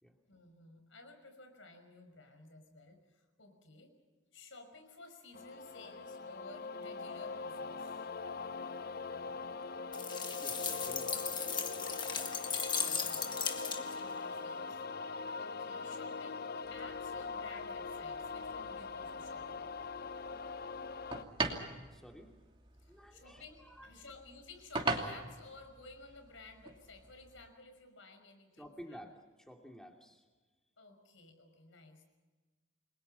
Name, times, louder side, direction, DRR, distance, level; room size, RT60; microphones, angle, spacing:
voice 1, 0.3-3.9 4.3-8.0 12.8-14.8 15.4-19.7 22.8-29.0 30.8-32.0, left 3 dB, 75° left, 7 dB, 5.8 m, -55 dB
sound 1, 5.3-21.2, left 4 dB, 50° left, 0.7 m, -42 dB
sound 2, 9.9-14.1, left 6 dB, 25° left, 1.6 m, -37 dB
voice 2, 10.4-11.9 21.9-22.3 22.9-23.9 28.6-30.3, equal, 5° left, 2 dB, 2.9 m, -53 dB
sound 3, 16.6-27.5, right 3 dB, 25° right, 2.7 m, -43 dB
29.5 x 22.0 x 5.7 m, 1.3 s
head